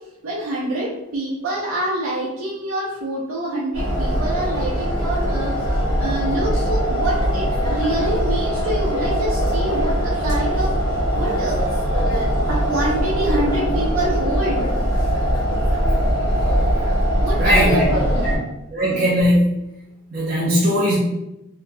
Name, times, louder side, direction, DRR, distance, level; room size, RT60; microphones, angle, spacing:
voice 1, 0.2-10.7 11.1-11.6 12.5-14.7 17.2-18.3, right 1 dB, 85° right, -5 dB, 0.6 m, -26 dB
sound 1, 3.7-18.4, equal, 90° left, 1.0 m, -21 dB
voice 2, 17.4-18.4 18.7-19.6 20.1-20.9, equal, 45° right, -7 dB, 0.6 m, -19 dB
3.0 x 2.8 x 2.2 m, 0.91 s
head